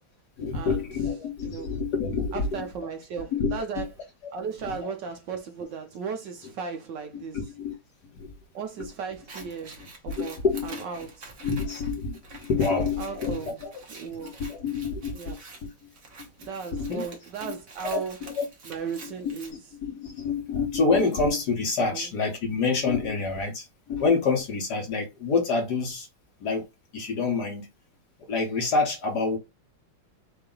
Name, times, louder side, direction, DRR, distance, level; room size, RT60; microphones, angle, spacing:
voice 1, 0.4-2.6 3.3-3.8 4.7-4.9 7.1-7.7 8.2-8.3 10.2-10.8 11.4-13.7 14.2-15.4 16.7-17.0 17.4-17.5 17.9-18.4 19.0-19.1 19.8-26.1 26.4-26.7 26.9-27.7 28.3-29.4, left 4 dB, 55° left, 1.4 m, -27 dB
voice 2, 1.4-1.7 2.3-3.9 4.3-7.4 8.5-11.3 12.7-13.6 13.9-14.3 15.1-15.4 16.4-18.2 18.7-19.6 21.9-22.1, right 6 dB, 65° right, 1.2 m, -36 dB
Scissors, 9.1-19.5, right 3 dB, 45° right, 1.3 m, -47 dB
4.7 x 2.7 x 3.7 m
omnidirectional pair, 2.3 m